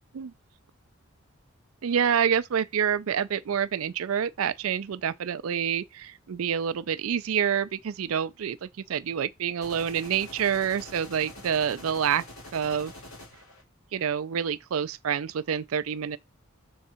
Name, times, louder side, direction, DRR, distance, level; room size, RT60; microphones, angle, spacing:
voice 1, 1.8-12.2 12.5-12.9 13.9-16.2, right 8 dB, 85° right, 0.4 m, -27 dB
sound 1, 9.6-13.6, left 1 dB, 85° left, 2.4 m, -45 dB
6.3 x 3.6 x 4.3 m
head